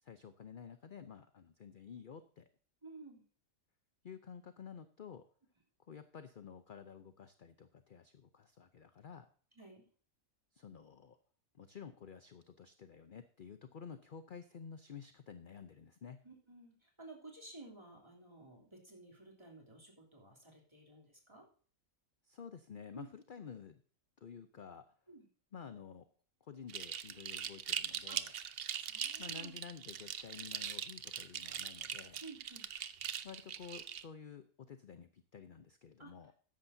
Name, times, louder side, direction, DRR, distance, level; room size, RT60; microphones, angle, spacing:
voice 1, 0.0-2.5 4.0-5.3 5.9-9.3 10.5-11.2 11.6-16.2 22.2-23.8 24.2-24.9 25.5-26.1 26.4-28.3 29.2-32.2 33.2-36.3, left 7 dB, 45° left, 9 dB, 0.8 m, -51 dB
voice 2, 2.8-3.2 9.5-9.8 16.2-21.4 22.9-23.1 25.1-25.3 28.1-28.2 28.7-29.5 32.2-32.7 36.0-36.1, right 2 dB, 20° right, -1 dB, 3.2 m, -54 dB
sound 1, 26.7-34.0, right 9 dB, 55° right, 0.8 m, -41 dB
13.5 x 10.0 x 2.7 m, 0.43 s
omnidirectional pair, 1.4 m